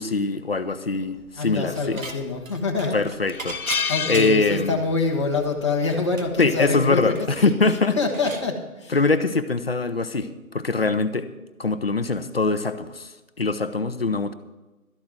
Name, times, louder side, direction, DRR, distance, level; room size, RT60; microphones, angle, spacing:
voice 1, 0.0-2.0 2.9-4.8 6.4-8.0 8.9-11.3 11.6-14.3, left 3 dB, 45° left, 11 dB, 0.8 m, -23 dB
voice 2, 1.3-3.0 3.9-7.5 8.0-9.0, left 3 dB, 20° left, -1 dB, 1.2 m, -25 dB
Dishes pots and pans / Chink clink, 1.4-2.2 2.5-4.6 5.0-5.1 5.4-8.5, right 3 dB, 60° right, 1.7 m, -38 dB
sound 1, 1.9-2.4 2.8-2.9 3.3-5.1 5.4-5.6 6.9-7.2, left 6 dB, 75° left, 0.7 m, -29 dB
13.0 x 8.3 x 6.2 m, 1.1 s
figure-of-eight pair, 170°, 44 cm